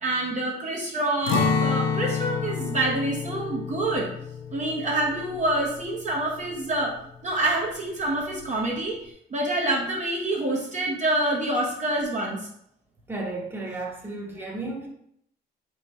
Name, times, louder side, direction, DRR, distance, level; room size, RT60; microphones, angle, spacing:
voice 1, 0.0-4.1 4.5-7.0 7.2-12.4, right 2 dB, 35° right, -2 dB, 0.8 m, -27 dB
Acoustic guitar, 1.3-7.2 7.5-7.6 8.1-8.6, left 5 dB, 85° left, 0.6 m, -29 dB
voice 2, 13.1-14.9, right 2 dB, 10° right, -2 dB, 1.0 m, -33 dB
3.1 x 2.9 x 4.3 m, 0.73 s
cardioid pair, 90°, 20 cm